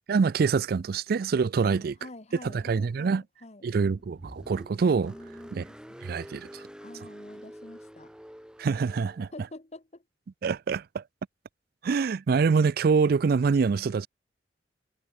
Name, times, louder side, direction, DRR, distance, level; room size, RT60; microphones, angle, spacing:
voice 1, 0.1-1.9 2.5-3.2 3.6-5.1 5.5-5.6 6.0-6.6 8.6-9.3 10.4-11.0 11.8-14.1, right 5 dB, 60° right, 0.4 m, -25 dB
voice 2, 1.6-4.0 5.1-5.8 6.8-8.1 9.3-10.0 13.7-14.1, left 2 dB, 40° left, 1.6 m, -48 dB
Car, 3.8-9.3, equal, 5° right, 3.6 m, -47 dB
head